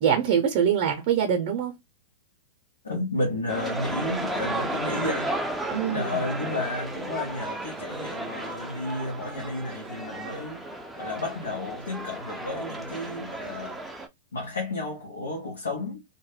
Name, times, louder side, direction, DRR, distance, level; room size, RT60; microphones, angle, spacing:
voice 1, 0.0-1.7 5.7-6.2, right 8 dB, 50° right, 0.6 m, -24 dB
voice 2, 2.8-5.4 5.9-10.7 11.0-13.8 14.3-16.0, left 2 dB, 90° left, 0.8 m, -32 dB
sound 1, 3.5-14.1, right 1 dB, 5° right, 0.5 m, -34 dB
2.2 x 2.1 x 3.2 m
hypercardioid pair, 115°, 0 cm